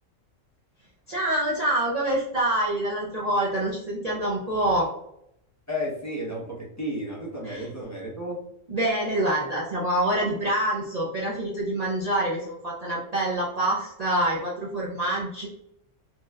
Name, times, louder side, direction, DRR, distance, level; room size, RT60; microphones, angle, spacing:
voice 1, 1.1-4.9 7.4-7.7 8.7-15.5, right 1 dB, 40° right, -5 dB, 0.6 m, -26 dB
voice 2, 5.7-8.4, equal, 15° left, -5 dB, 0.9 m, -32 dB
4.4 x 2.8 x 2.4 m, 0.77 s
omnidirectional pair, 1.3 m